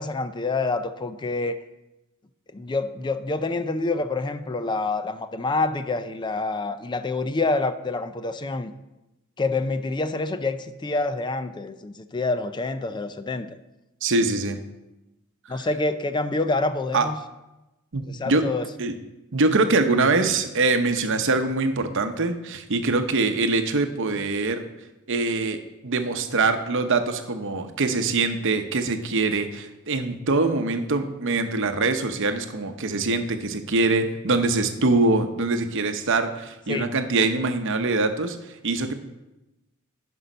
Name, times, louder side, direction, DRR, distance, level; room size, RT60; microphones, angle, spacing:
voice 1, 0.0-1.6 2.5-8.7 9.4-13.6 15.5-17.2 18.1-18.7 36.7-36.9, left 3 dB, 20° left, 11 dB, 0.4 m, -27 dB
voice 2, 14.0-14.6 16.9-17.1 17.9-18.5 18.8-18.9 19.3-24.7 25.1-38.9, right 3 dB, 60° right, 8 dB, 0.8 m, -23 dB
10.0 x 5.4 x 5.4 m, 0.99 s
head